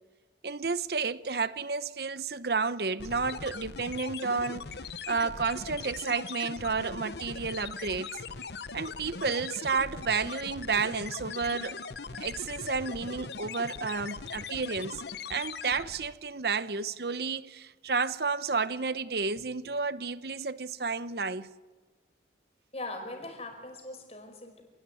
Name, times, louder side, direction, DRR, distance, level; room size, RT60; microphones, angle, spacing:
voice 1, 0.4-4.7 5.1-8.2 8.7-11.8 12.2-15.0 15.3-21.5, right 4 dB, 60° right, 0.8 m, -31 dB
sound 1, 3.0-16.2, left 4 dB, 65° left, 1.0 m, -40 dB
voice 2, 22.7-24.6, left 2 dB, 35° left, 4.9 m, -40 dB
27.5 x 19.0 x 9.9 m
head